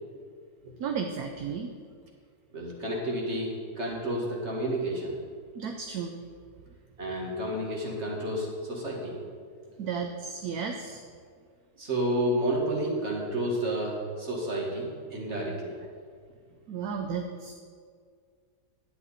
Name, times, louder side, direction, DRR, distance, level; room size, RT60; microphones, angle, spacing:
voice 1, 0.8-1.7 5.6-6.2 9.8-11.0 16.7-17.5, right 6 dB, 65° right, 4 dB, 1.1 m, -33 dB
voice 2, 2.5-5.2 7.0-9.2 11.8-15.8, right 1 dB, 40° right, -2 dB, 2.1 m, -30 dB
11.0 x 9.2 x 4.2 m, 2.1 s
omnidirectional pair, 1.9 m